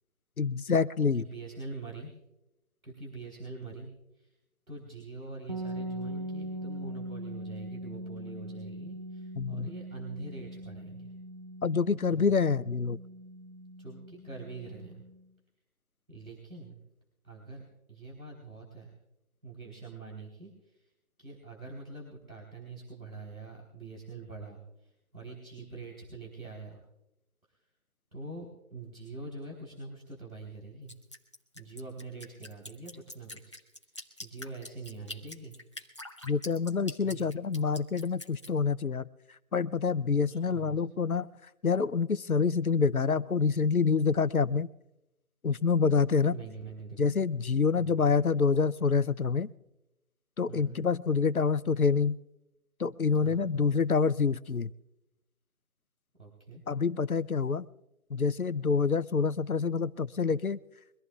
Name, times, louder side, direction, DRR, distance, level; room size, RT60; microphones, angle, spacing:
voice 1, 0.4-1.2 9.4-9.7 11.6-13.0 36.2-39.0 39.5-41.3 41.6-44.7 45.4-46.4 47.0-49.5 50.4-52.2 52.8-54.7 56.7-57.7 58.1-60.6, left 5 dB, 85° left, 17 dB, 0.7 m, -27 dB
voice 2, 1.1-2.1 2.8-4.3 4.7-11.1 12.1-12.3 13.8-15.0 16.1-16.8 17.2-17.6 17.9-18.9 19.4-20.9 21.2-26.8 28.1-30.9 31.5-33.5 33.9-35.6 37.0-37.4 40.2-40.9 46.3-47.1 47.8-48.0 50.5-50.8 53.2-53.7 56.2-56.6, right 3 dB, 80° right, -1 dB, 3.9 m, -44 dB
sound 1, 5.5-15.2, right 1 dB, 30° right, 0.7 m, -41 dB
Drip, 30.9-38.5, left 1 dB, 20° left, 0.9 m, -45 dB
23.5 x 15.0 x 2.4 m, 0.90 s
figure-of-eight pair, 160°, 42 cm